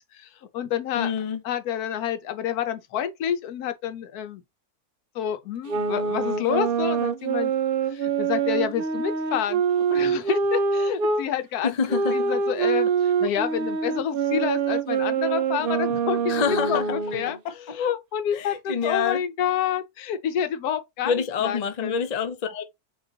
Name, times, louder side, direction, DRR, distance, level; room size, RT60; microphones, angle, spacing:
voice 1, 0.1-1.1 1.4-4.4 5.1-7.5 7.9-9.6 9.9-11.7 12.1-21.1 21.4-22.0, left 9 dB, 80° left, 1.2 m, -28 dB
voice 2, 0.9-1.4 11.6-12.3 16.3-16.9 17.4-17.8 18.3-19.2 21.0-22.6, left 6 dB, 55° left, 0.4 m, -27 dB
sound 1, 5.7-11.2 11.9-17.4, right 5 dB, 65° right, 0.5 m, -25 dB
3.9 x 2.9 x 3.9 m
omnidirectional pair, 1.6 m